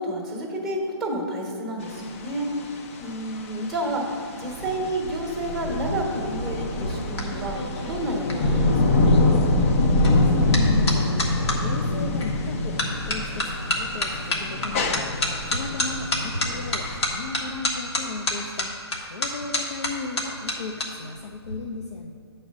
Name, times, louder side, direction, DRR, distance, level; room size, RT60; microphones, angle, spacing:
voice 1, 0.0-9.1, right 1 dB, ahead, -1 dB, 1.2 m, -30 dB
sound 1, 1.8-17.1, left 2 dB, 30° left, 0.5 m, -24 dB
sound 2, 6.6-11.6 12.2-12.5 12.8-20.9 21.1-21.5, left 1 dB, 70° left, 1.5 m, -29 dB
voice 2, 9.8-22.1, left 3 dB, 85° left, 3 dB, 0.6 m, -36 dB
8.6 x 4.2 x 6.2 m, 2.6 s
hypercardioid pair, 155°, 14 cm